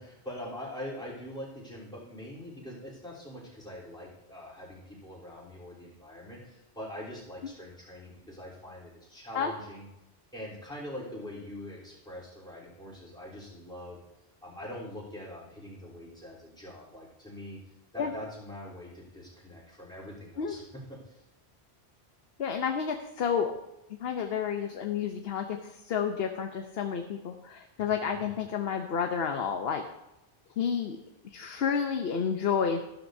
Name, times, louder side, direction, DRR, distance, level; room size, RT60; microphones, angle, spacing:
voice 1, 0.0-9.9 10.3-14.0 14.4-17.6 17.9-21.2 27.8-27.9, left 1 dB, 5° left, -7 dB, 3.4 m, -43 dB
voice 2, 22.4-23.5 23.9-29.8 30.6-31.0 31.2-32.8, left 7 dB, 70° left, 5 dB, 1.0 m, -30 dB
14.0 x 12.0 x 2.7 m, 0.92 s
omnidirectional pair, 1.1 m